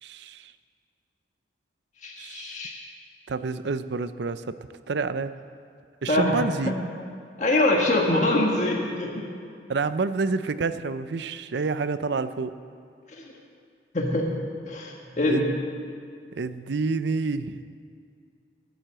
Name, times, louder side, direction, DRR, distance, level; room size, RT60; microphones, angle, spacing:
voice 1, 0.0-0.5 2.2-2.6 3.3-4.6 4.9-5.3 6.0-6.7 9.7-12.6 15.3-15.4 16.3-17.6, right 4 dB, 75° right, 13 dB, 0.5 m, -28 dB
voice 2, 2.0-2.7 6.1-6.4 7.4-9.3 13.1-13.2 13.9-14.3 14.6-15.5, left 1 dB, 40° left, -1 dB, 1.5 m, -24 dB
16.0 x 7.8 x 7.6 m, 2.4 s
head